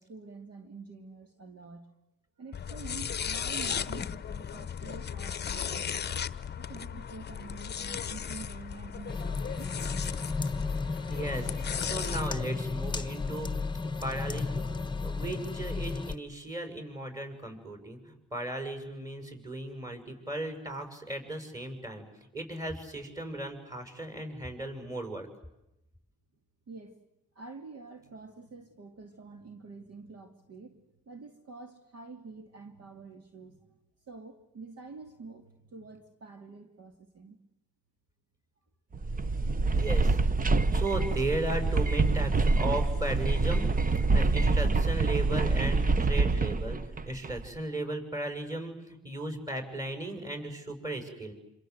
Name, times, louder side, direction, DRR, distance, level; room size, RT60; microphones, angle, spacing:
voice 1, 0.0-1.9 2.4-6.1 6.6-9.9 26.7-26.9 27.3-33.8 34.1-37.4 39.1-39.2, right 3 dB, 55° right, 5 dB, 2.8 m, -47 dB
sound 1, 2.5-12.3, left 7 dB, 35° left, 0.9 m, -36 dB
sound 2, 9.1-16.2, left 4 dB, 15° left, 1.3 m, -33 dB
voice 2, 11.1-11.5 11.8-14.7 15.0-22.0 22.3-25.3 39.7-51.3, right 1 dB, 10° right, 7 dB, 6.9 m, -36 dB
sound 3, 38.9-47.5, right 3 dB, 30° right, 0.9 m, -26 dB
27.0 x 26.5 x 8.1 m, 0.90 s
cardioid pair, 90°, 30 cm